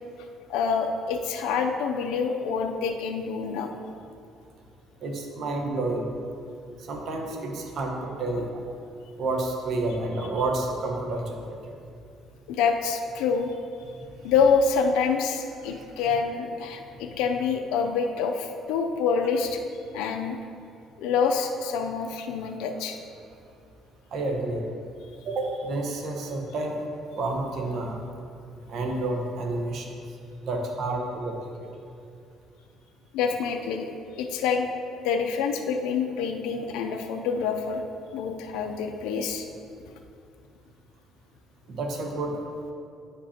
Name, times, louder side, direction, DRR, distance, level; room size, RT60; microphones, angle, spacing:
voice 1, 0.5-3.7 12.5-13.5 14.2-19.6 19.9-20.4 21.0-23.0 33.1-33.9 34.2-34.7 35.0-37.8 38.1-39.5, left 5 dB, 90° left, 4 dB, 0.5 m, -26 dB
voice 2, 5.0-6.1 6.9-8.6 9.2-11.5 15.7-15.8 24.1-24.6 25.2-26.8 27.2-28.0 28.7-29.9 30.4-31.4 41.7-42.4, right 2 dB, 60° right, 1 dB, 1.0 m, -29 dB
9.6 x 5.2 x 2.9 m, 2.5 s
cardioid pair, 100°, 0 cm